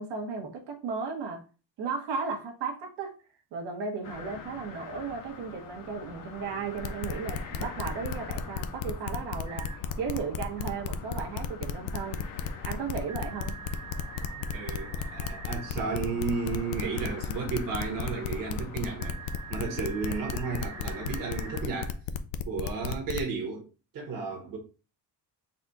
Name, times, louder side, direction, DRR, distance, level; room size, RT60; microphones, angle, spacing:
voice 1, 0.0-1.4 1.8-3.2 3.5-12.3 12.6-13.6, right 5 dB, 70° right, 1.3 m, -35 dB
sound 1, 4.0-21.7, left 5 dB, 50° left, 0.8 m, -46 dB
sound 2, 6.8-23.2, left 8 dB, 90° left, 0.5 m, -34 dB
sound 3, 9.5-9.8 13.1-15.7 19.0-21.6, right 6 dB, 10° right, 0.7 m, -44 dB
voice 2, 14.3-19.2 19.5-22.0 22.4-23.7 23.9-24.6, right 4 dB, 50° right, 1.3 m, -33 dB
4.2 x 2.4 x 4.0 m
cardioid pair, 170°, 43 cm